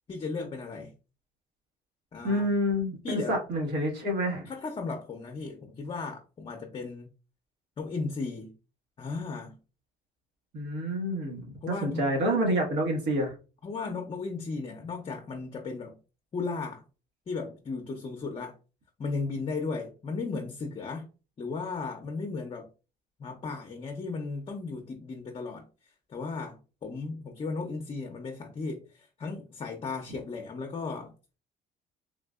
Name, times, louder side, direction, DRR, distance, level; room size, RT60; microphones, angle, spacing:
voice 1, 0.1-0.9 2.1-2.5 3.0-3.4 4.5-7.1 7.8-8.5 9.0-9.6 11.6-12.1 13.6-16.0 16.3-16.8 17.3-18.5 19.0-21.1 21.4-22.7 23.2-25.7 26.1-31.1, left 4 dB, 30° left, 0.6 m, -35 dB
voice 2, 2.2-4.5 10.5-11.4 11.7-13.3 30.1-30.2, equal, 80° right, 1.4 m, -28 dB
3.6 x 2.5 x 2.3 m
cardioid pair, 110°, 17 cm